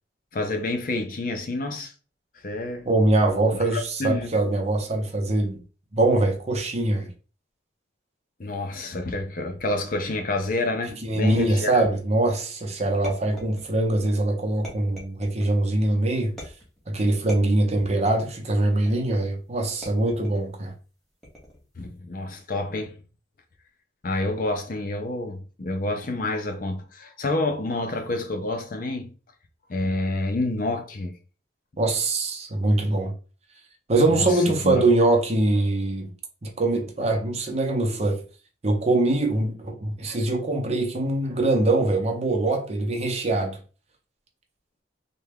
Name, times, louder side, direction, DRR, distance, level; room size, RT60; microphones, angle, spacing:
voice 1, 0.3-1.9 2.4-2.9 3.5-4.3 8.4-11.8 21.8-23.0 24.0-29.1 29.7-31.2 34.1-34.9, left 2 dB, 50° left, 0.6 m, -28 dB
voice 2, 2.9-5.6 5.9-7.1 11.0-16.3 16.9-20.7 31.8-33.1 33.9-36.1 36.4-38.2 38.6-43.6, right 2 dB, 35° right, 0.7 m, -23 dB
sound 1, 13.0-14.0 14.6-15.6 16.4-16.8 17.3-18.3 18.9-19.3 19.8-20.5 21.2-21.7, equal, ahead, 1.1 m, -42 dB
3.3 x 2.2 x 3.4 m
head